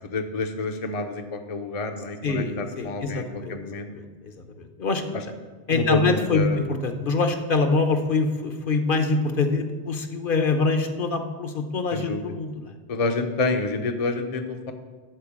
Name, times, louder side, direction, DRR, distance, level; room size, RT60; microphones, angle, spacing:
voice 1, 0.0-3.2 3.5-3.9 5.7-6.6 11.9-12.2 12.9-14.7, left 3 dB, 40° left, 4 dB, 0.7 m, -28 dB
voice 2, 2.2-3.5 3.9-5.2 5.7-12.7, left 3 dB, 60° left, 6 dB, 1.1 m, -25 dB
12.5 x 4.4 x 7.3 m, 1.4 s
omnidirectional pair, 1.0 m